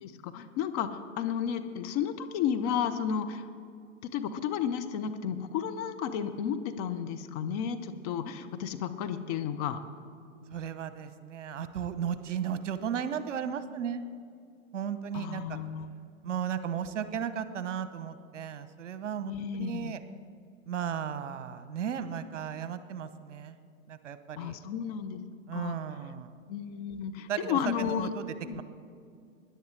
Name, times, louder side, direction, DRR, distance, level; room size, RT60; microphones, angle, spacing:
voice 1, 0.0-3.5 4.0-9.8 15.1-15.9 19.3-19.9 24.4-25.2 25.5-25.8 26.5-28.1 28.4-28.6, left 8 dB, 30° left, 8 dB, 0.6 m, -33 dB
voice 2, 10.5-14.0 14.7-15.6 16.2-20.0 20.6-23.6 23.9-24.6 25.5-26.3 27.3-28.6, right 8 dB, 65° right, 12 dB, 0.9 m, -35 dB
19.5 x 10.5 x 3.3 m, 2.4 s
hypercardioid pair, 115°, 39 cm